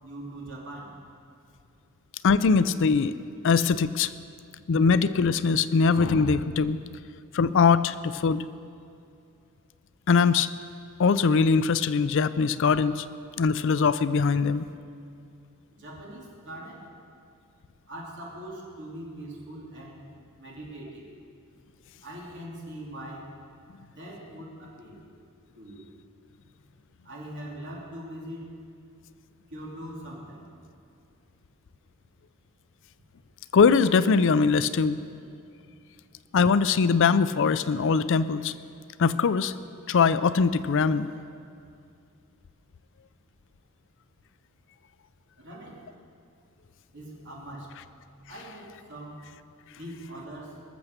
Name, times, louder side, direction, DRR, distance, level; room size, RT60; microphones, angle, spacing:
voice 1, 0.0-1.0 15.7-16.9 17.9-20.0 20.4-21.1 22.0-23.3 24.0-25.0 25.5-25.8 27.0-28.5 29.5-30.5 45.4-45.8 46.9-47.8 48.3-49.3 49.7-50.6, right 1 dB, 55° right, -3 dB, 3.0 m, -41 dB
voice 2, 2.2-3.1 3.4-4.1 4.7-6.8 7.3-8.4 10.1-10.5 11.0-13.1 13.4-14.6 33.5-35.0 36.3-38.5 39.0-39.5 39.9-41.1, left 5 dB, 60° left, 14 dB, 0.4 m, -22 dB
21.5 x 7.2 x 6.7 m, 2.4 s
head